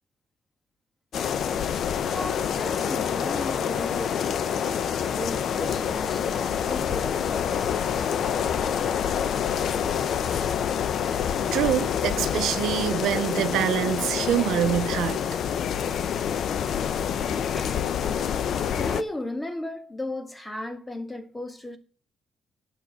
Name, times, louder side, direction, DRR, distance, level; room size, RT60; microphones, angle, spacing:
sound 1, 1.1-19.0, left 8 dB, 65° left, 0.7 m, -27 dB
voice 1, 2.1-7.7 17.5-17.8 18.8-21.8, left 1 dB, 15° left, 1.8 m, -35 dB
voice 2, 11.5-15.2, right 12 dB, 85° right, 0.6 m, -25 dB
10.0 x 5.9 x 7.5 m
cardioid pair, 90°, 0 cm